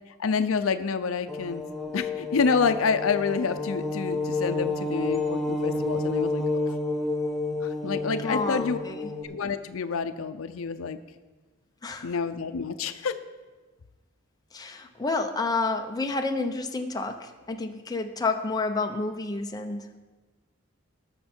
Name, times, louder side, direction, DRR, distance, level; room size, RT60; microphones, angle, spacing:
voice 1, 0.2-1.6 1.9-6.4 7.6-8.8 9.2-11.0 12.0-13.1, left 5 dB, 75° left, 10 dB, 0.5 m, -28 dB
sound 1, 1.3-9.2, left 3 dB, ahead, 1.2 m, -30 dB
voice 2, 8.2-9.1 11.8-12.2 14.5-20.0, left 3 dB, 20° left, 4 dB, 0.7 m, -30 dB
19.5 x 6.5 x 4.4 m, 1.2 s
head